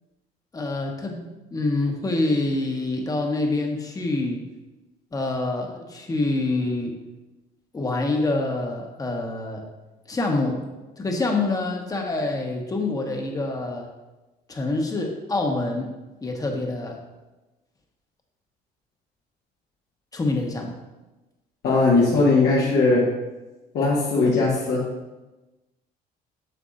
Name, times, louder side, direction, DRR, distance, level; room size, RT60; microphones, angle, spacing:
voice 1, 0.5-4.4 5.1-6.9 7.7-9.6 10.1-10.6 11.0-13.9 14.5-15.9 16.2-17.0 20.1-20.7, left 2 dB, 20° left, 1 dB, 1.2 m, -26 dB
voice 2, 21.6-23.0 23.7-24.8, left 3 dB, 70° left, -7 dB, 1.5 m, -19 dB
8.0 x 6.4 x 2.5 m, 1.1 s
cardioid pair, 110°, 17 cm